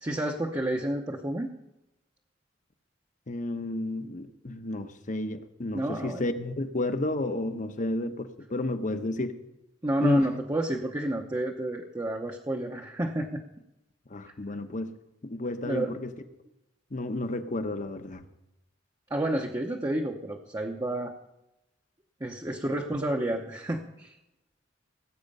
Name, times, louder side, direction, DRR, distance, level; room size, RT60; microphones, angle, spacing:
voice 1, 0.0-1.5 5.7-6.2 9.8-13.4 15.7-15.9 19.1-21.1 22.2-24.1, right 1 dB, 20° right, 1 dB, 0.8 m, -30 dB
voice 2, 3.3-9.3 10.0-10.3 14.1-15.0 15.2-16.1 16.9-18.2, left 1 dB, 40° left, 8 dB, 0.9 m, -31 dB
18.5 x 8.0 x 5.4 m, 0.91 s
head